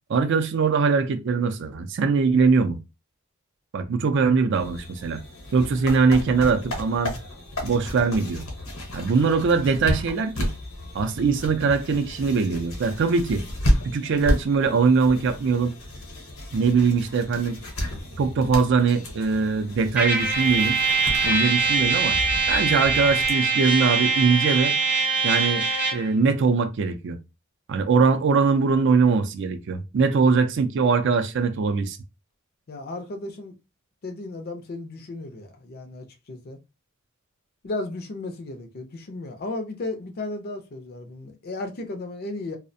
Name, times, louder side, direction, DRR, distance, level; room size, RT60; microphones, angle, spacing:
voice 1, 0.1-2.8 3.7-5.2 5.5-7.1 7.6-8.5 8.9-10.5 10.9-13.4 13.8-15.7 16.5-17.6 18.2-20.8 21.2-22.2 22.5-24.8 25.2-25.7 25.9-27.2 27.7-32.0, right 5 dB, 55° right, 0.4 m, -22 dB
sound 1, 4.5-23.3, left 1 dB, 80° left, 0.8 m, -32 dB
Trumpet, 19.9-26.1, right 4 dB, 5° right, 0.5 m, -23 dB
voice 2, 32.7-33.6 34.0-36.6 37.6-42.6, left 2 dB, 45° left, 0.4 m, -34 dB
2.4 x 2.1 x 2.6 m
head